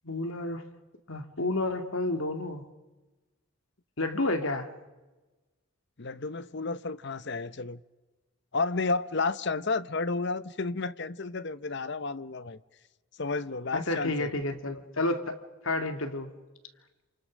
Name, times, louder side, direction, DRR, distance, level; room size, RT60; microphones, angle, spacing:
voice 1, 0.0-0.7 1.1-2.6 4.0-4.7 13.7-15.4 15.6-16.3, left 2 dB, 70° left, 2.3 m, -30 dB
voice 2, 6.0-7.8 8.5-12.6 13.2-14.3, left 3 dB, 55° left, 0.8 m, -31 dB
28.5 x 27.5 x 6.4 m
head